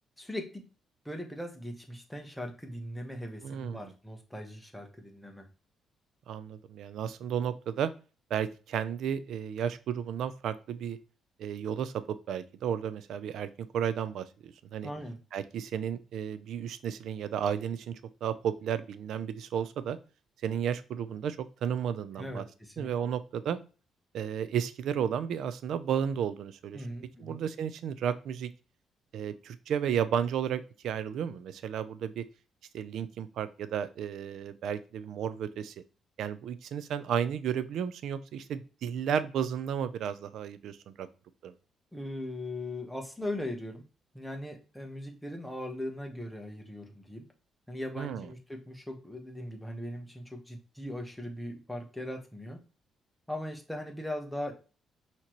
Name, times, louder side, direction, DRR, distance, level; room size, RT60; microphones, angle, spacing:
voice 1, 0.2-0.6 1.0-5.5 14.8-15.2 22.2-22.9 26.7-27.4 41.9-43.8 44.1-47.2 47.7-52.6 53.3-54.5, left 1 dB, 5° left, 2 dB, 1.1 m, -39 dB
voice 2, 3.4-3.9 6.3-7.9 8.3-11.0 11.4-14.9 15.3-20.0 20.4-22.4 22.8-23.6 24.1-26.9 27.2-28.5 29.1-32.3 32.7-35.7 36.2-41.1 41.4-41.5 48.0-48.3, right 8 dB, 75° right, 13 dB, 0.4 m, -33 dB
5.8 x 2.9 x 3.1 m, 0.35 s
cardioid pair, 90°, 0 cm